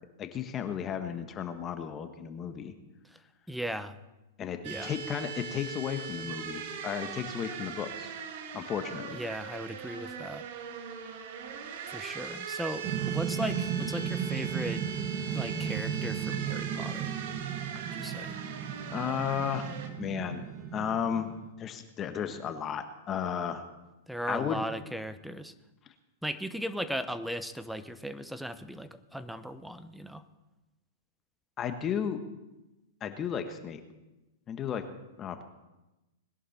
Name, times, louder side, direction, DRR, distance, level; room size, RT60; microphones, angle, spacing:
voice 1, 0.2-2.7 4.4-8.1 8.5-9.2 18.9-19.7 20.0-20.4 20.7-21.3 21.6-23.7 24.3-24.6 31.6-32.2 33.0-33.8 34.5-34.8 35.2-35.4, left 8 dB, 30° left, 8 dB, 1.4 m, -34 dB
voice 2, 3.5-3.9 4.6-5.0 9.1-10.4 11.9-14.8 15.3-17.2 17.9-18.4 24.1-25.5 26.2-30.2, equal, ahead, 12 dB, 0.9 m, -37 dB
sound 1, 4.6-19.9, right 6 dB, 60° right, 2.0 m, -40 dB
sound 2, 12.8-21.5, right 8 dB, 40° right, 1.4 m, -35 dB
20.5 x 11.0 x 4.3 m, 1.0 s
hypercardioid pair, 115°, 0 cm